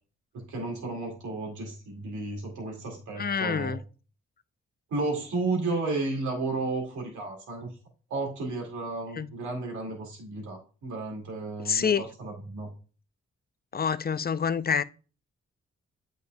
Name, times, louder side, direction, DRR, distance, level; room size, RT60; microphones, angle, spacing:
voice 1, 0.3-3.8 4.9-7.7 8.1-12.7, right 3 dB, 90° right, 2.4 m, -33 dB
voice 2, 3.2-3.8 9.2-9.3 11.7-12.0 13.7-14.8, left 6 dB, 35° left, 0.5 m, -27 dB
9.2 x 5.3 x 2.3 m
supercardioid pair, 50°, 29 cm